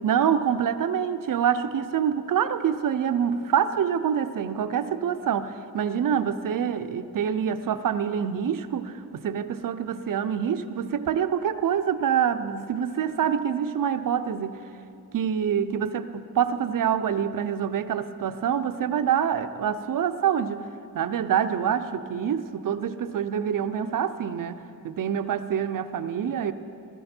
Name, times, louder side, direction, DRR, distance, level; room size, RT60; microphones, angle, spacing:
voice 1, 0.0-14.6 15.1-20.7 20.9-26.5, right 8 dB, 65° right, 10 dB, 0.7 m, -26 dB
19.0 x 13.0 x 4.4 m, 2.5 s
wide cardioid pair, 105°, 36 cm